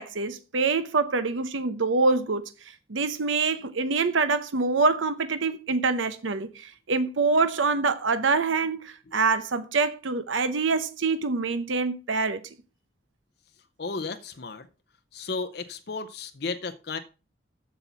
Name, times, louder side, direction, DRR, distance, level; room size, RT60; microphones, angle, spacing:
voice 1, 0.0-12.5, right 4 dB, 80° right, 0.8 m, -25 dB
voice 2, 13.8-14.7 15.1-17.0, left 4 dB, 55° left, 0.6 m, -33 dB
8.0 x 7.1 x 5.9 m
head